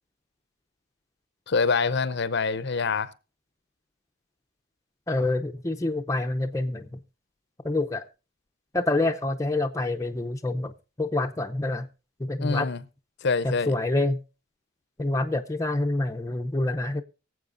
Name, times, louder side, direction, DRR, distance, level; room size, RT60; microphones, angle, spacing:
voice 1, 1.5-3.1 12.4-12.8 13.2-13.7, left 4 dB, 50° left, 0.6 m, -25 dB
voice 2, 5.1-6.8 7.6-8.0 8.7-10.7 11.0-11.9 12.2-12.7 13.4-14.2 15.0-17.0, left 2 dB, 15° left, 0.6 m, -27 dB
23.0 x 7.7 x 2.5 m
head